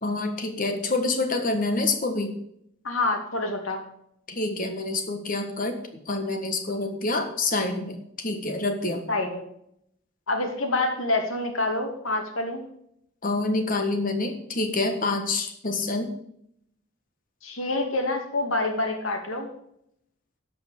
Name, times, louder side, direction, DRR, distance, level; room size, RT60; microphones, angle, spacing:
voice 1, 0.0-2.4 4.3-5.8 6.1-9.1 13.2-16.1, left 2 dB, 40° left, 6 dB, 1.6 m, -27 dB
voice 2, 2.8-3.8 9.1-9.4 10.3-12.6 17.4-19.5, left 2 dB, 85° left, 3 dB, 2.3 m, -27 dB
12.5 x 5.4 x 7.0 m, 0.73 s
head